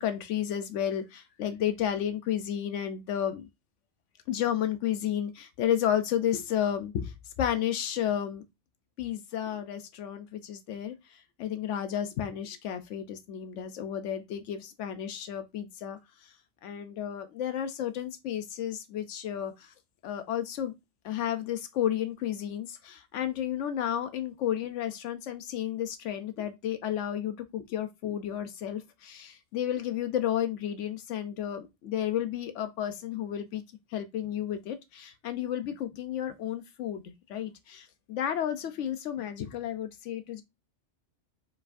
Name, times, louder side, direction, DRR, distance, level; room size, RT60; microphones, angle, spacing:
voice 1, 0.0-3.5 4.3-8.4 9.0-16.3 16.6-19.7 20.0-20.7 21.0-33.6 33.9-40.4, left 10 dB, 85° left, 0.9 m, -32 dB
4.8 x 4.4 x 2.5 m
omnidirectional pair, 1.2 m